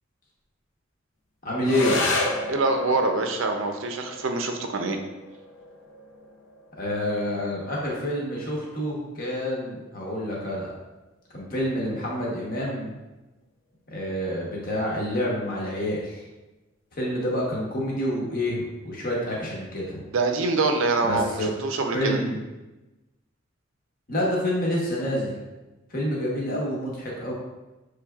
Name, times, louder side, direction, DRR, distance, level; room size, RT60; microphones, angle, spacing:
voice 1, 1.4-2.2 6.8-10.7 11.3-12.9 13.9-16.2 16.9-20.0 21.0-21.5 21.9-22.4 24.1-25.3 25.9-27.3, left 1 dB, 45° left, -4 dB, 1.1 m, -28 dB
sound 1, 1.6-10.6, left 2 dB, 65° left, 0.6 m, -33 dB
voice 2, 2.5-5.0 20.1-22.2, right 3 dB, 70° right, 5 dB, 0.5 m, -25 dB
6.0 x 3.3 x 2.3 m, 1.1 s
head